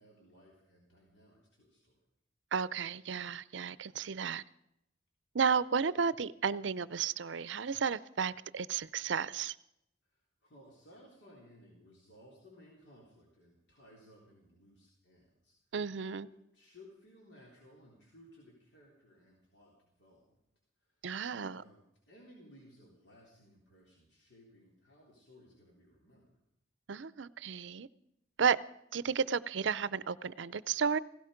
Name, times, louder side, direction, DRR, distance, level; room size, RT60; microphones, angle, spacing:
voice 1, 0.0-2.0 10.0-15.6 16.2-20.4 20.8-26.3, left 1 dB, 70° left, -2 dB, 3.7 m, -60 dB
voice 2, 2.5-4.4 5.3-9.5 15.7-16.3 21.0-21.6 26.9-27.9 28.4-28.6 28.9-31.0, right 6 dB, 75° right, 18 dB, 0.5 m, -33 dB
17.0 x 16.5 x 5.1 m, 0.81 s
head